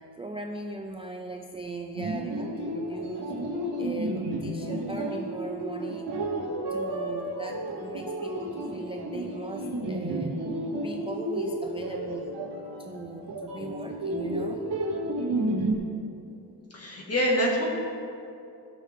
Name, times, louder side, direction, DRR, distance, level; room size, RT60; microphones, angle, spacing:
voice 1, 0.0-3.3 3.8-6.1 6.7-10.4 10.8-12.4 12.8-14.7, right 2 dB, 15° right, 2 dB, 0.4 m, -39 dB
sound 1, 2.0-15.7, right 1 dB, 80° right, 2.1 m, -32 dB
voice 2, 16.7-17.6, equal, 35° left, -3 dB, 1.9 m, -25 dB
16.5 x 6.6 x 3.6 m, 2.6 s
wide cardioid pair, 170°, 41 cm